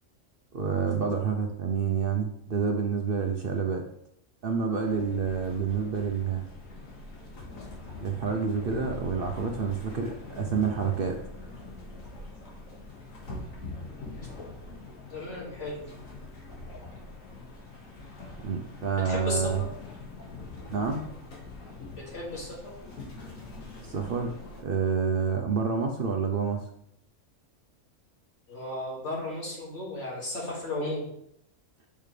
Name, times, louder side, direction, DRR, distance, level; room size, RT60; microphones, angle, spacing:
voice 1, 0.5-3.9 4.4-6.5 8.0-11.2 18.4-19.6 20.7-21.1 23.8-26.7, right 6 dB, 55° right, 4 dB, 0.7 m, -28 dB
sound 1, 4.9-24.6, left 2 dB, 85° left, 2.0 m, -43 dB
voice 2, 15.1-15.9 19.0-19.7 22.0-22.7 28.5-31.1, left 1 dB, 60° left, -4 dB, 2.5 m, -35 dB
7.0 x 5.5 x 3.2 m, 0.73 s
omnidirectional pair, 1.4 m